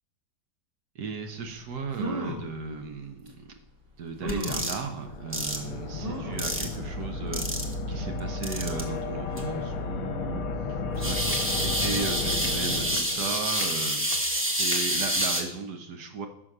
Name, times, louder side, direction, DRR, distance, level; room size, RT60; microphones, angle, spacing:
voice 1, 0.9-3.4 4.0-7.6 7.9-10.4 10.9-14.1 14.6-16.3, right 4 dB, 70° right, 5 dB, 1.5 m, -36 dB
sound 1, 1.5-1.6 1.9-2.5 3.3-3.4 4.2-4.7 6.0-6.5 7.0-7.1 7.4-7.5, equal, 35° right, 1.6 m, -33 dB
sound 2, 4.3-4.8 5.3-5.6 6.4-6.8 7.3-7.7 8.4-8.8 9.4-9.5 11.0-15.4, equal, 15° right, 0.5 m, -28 dB
sound 3, 5.0-13.6, left 3 dB, 65° left, 1.1 m, -33 dB
6.3 x 6.2 x 5.4 m, 0.75 s
omnidirectional pair, 1.8 m